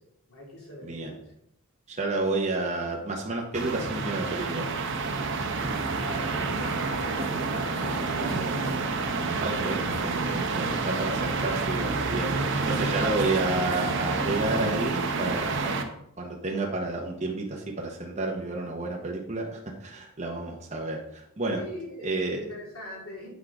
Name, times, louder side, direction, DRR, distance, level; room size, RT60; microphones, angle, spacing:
voice 1, 0.3-1.2 5.9-8.9 21.5-23.4, equal, 75° left, -3 dB, 3.4 m, -40 dB
voice 2, 0.8-1.1 1.9-4.7 9.4-15.7 16.2-21.6 22.0-22.4, right 2 dB, 35° right, -1 dB, 1.0 m, -30 dB
sound 1, 3.5-15.8, right 3 dB, 60° right, 0.9 m, -28 dB
8.4 x 5.0 x 4.8 m, 0.76 s
head